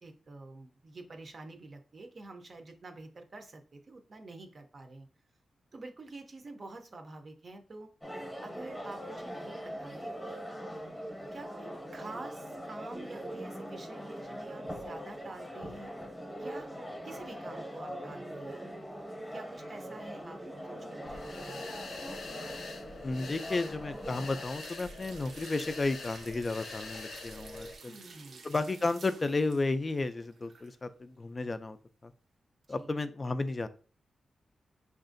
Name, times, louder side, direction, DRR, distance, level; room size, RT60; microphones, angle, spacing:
voice 1, 0.0-5.1 5.7-7.9 8.2-10.4 11.3-15.9 16.4-16.7 17.0-18.7 19.3-20.4 20.6-21.8 27.9-28.5 32.7-33.0, right 2 dB, 40° right, 5 dB, 0.5 m, -48 dB
sound 1, 8.0-24.5, equal, 5° left, 0.8 m, -42 dB
sound 2, 21.0-27.8, left 3 dB, 70° left, 0.6 m, -44 dB
voice 2, 23.0-28.0 28.4-31.8 32.0-32.1 32.7-33.7, left 3 dB, 30° left, 12 dB, 0.3 m, -33 dB
sound 3, 24.5-30.7 31.1-31.2, right 4 dB, 80° right, 0.6 m, -52 dB
5.4 x 2.5 x 2.5 m, 0.38 s
wide cardioid pair, 135°, 0 cm